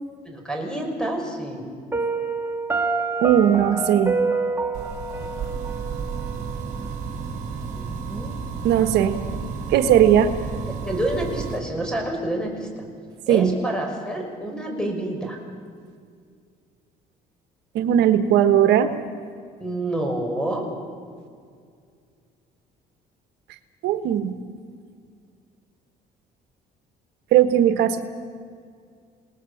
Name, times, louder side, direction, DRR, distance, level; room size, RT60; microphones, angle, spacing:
voice 1, 0.2-1.7 7.7-8.4 10.8-12.9 13.3-15.4 19.6-20.7, right 1 dB, 5° left, 2 dB, 5.8 m, -28 dB
Piano, 1.9-6.9, right 3 dB, 15° right, 1.6 m, -27 dB
voice 2, 3.2-4.1 8.6-9.2 9.7-10.3 13.3-13.5 17.7-18.9 23.8-24.3 27.3-28.0, right 10 dB, 80° right, 9 dB, 1.3 m, -18 dB
sound 1, 4.7-11.6, right 5 dB, 50° right, 5.1 m, -32 dB
28.0 x 19.0 x 7.1 m, 2.2 s
cardioid pair, 110°, 17 cm